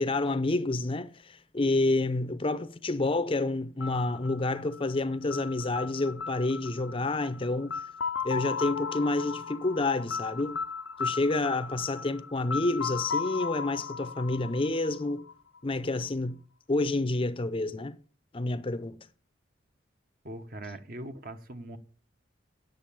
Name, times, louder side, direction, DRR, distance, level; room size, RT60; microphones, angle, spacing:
voice 1, 0.0-7.8 8.2-10.6 11.0-15.2 15.6-16.4 16.7-18.0 18.3-19.0, left 2 dB, 30° left, 0.6 m, -29 dB
sound 1, 3.8-15.6, left 6 dB, 80° left, 0.5 m, -36 dB
voice 2, 20.2-21.8, right 1 dB, 50° right, 1.2 m, -41 dB
9.1 x 6.7 x 8.7 m
head